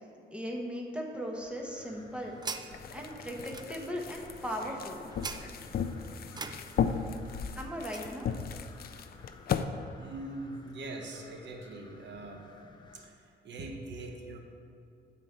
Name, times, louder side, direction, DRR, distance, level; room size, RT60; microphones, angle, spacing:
voice 1, 0.3-2.4 2.9-5.0 7.6-8.3, equal, 5° right, 0 dB, 1.1 m, -38 dB
sound 1, 1.3-13.1, left 3 dB, 25° left, 0.7 m, -57 dB
sound 2, 1.6-8.2, right 4 dB, 20° right, 0.4 m, -46 dB
sound 3, 2.7-9.6, left 7 dB, 55° left, 0.5 m, -36 dB
voice 2, 10.0-12.5 12.9-14.4, right 2 dB, 75° right, 3 dB, 1.2 m, -42 dB
9.1 x 4.4 x 6.9 m, 2.6 s
cardioid pair, 130°, 19 cm